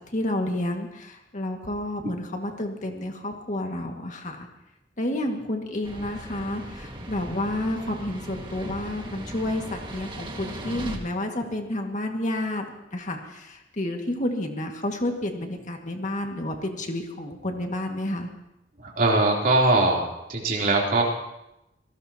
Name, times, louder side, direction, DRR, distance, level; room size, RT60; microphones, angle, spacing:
voice 1, 0.0-4.5 5.0-18.3, left 1 dB, 45° left, 3 dB, 2.0 m, -30 dB
sound 1, 5.8-11.0, right 1 dB, 30° right, 1.9 m, -38 dB
voice 2, 18.8-20.0 20.3-21.0, right 2 dB, 50° right, -3 dB, 3.6 m, -21 dB
27.0 x 18.0 x 3.0 m, 0.88 s
head